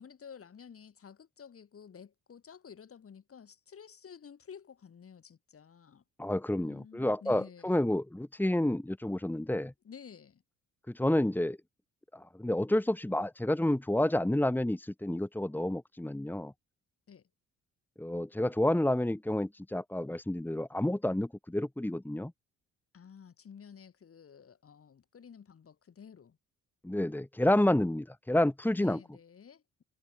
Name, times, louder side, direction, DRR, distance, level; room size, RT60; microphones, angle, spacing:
voice 1, 0.0-6.0 6.6-7.8 9.8-10.4 17.1-17.3 22.9-26.4 28.8-29.8, left 7 dB, 50° left, 7.3 m, -52 dB
voice 2, 6.2-9.7 10.9-11.6 12.1-16.5 18.0-22.3 26.8-29.0, left 1 dB, 5° left, 2.2 m, -29 dB
cardioid pair, 90°, 30 cm